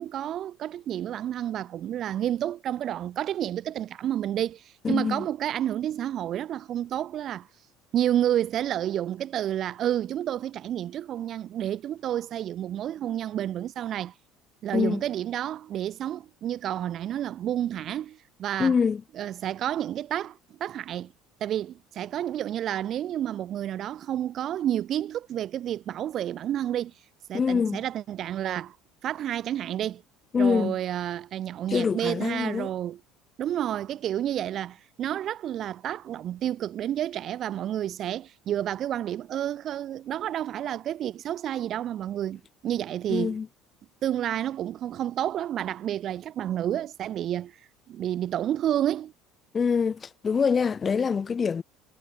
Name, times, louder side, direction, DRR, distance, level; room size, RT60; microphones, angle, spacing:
voice 1, 0.0-7.5 7.9-14.1 14.6-18.7 19.2-21.1 21.4-26.9 27.3-28.8 29.0-30.0 30.4-33.0 33.4-43.4 44.0-47.5 47.9-49.1, right 11 dB, 45° right, 0.3 m, -30 dB
voice 2, 4.8-5.3 14.7-15.0 18.6-19.0 27.3-27.8 30.3-30.8 31.7-32.7 43.1-43.5 49.5-51.6, left 6 dB, 25° left, 0.9 m, -25 dB
cardioid pair, 125°, 0 cm